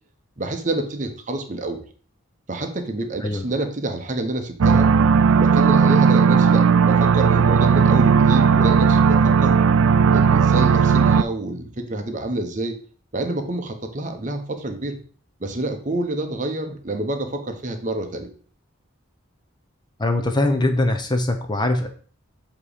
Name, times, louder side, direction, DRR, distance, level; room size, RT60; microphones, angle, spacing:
voice 1, 0.4-1.8 2.5-4.9 5.4-9.6 10.1-12.8 13.1-15.0 15.4-18.3, right 2 dB, 35° right, 6 dB, 0.8 m, -27 dB
sound 1, 4.6-11.2, right 6 dB, 80° right, 0.4 m, -16 dB
voice 2, 20.0-21.9, left 2 dB, 20° left, 5 dB, 0.5 m, -22 dB
7.5 x 3.0 x 4.9 m, 0.44 s
head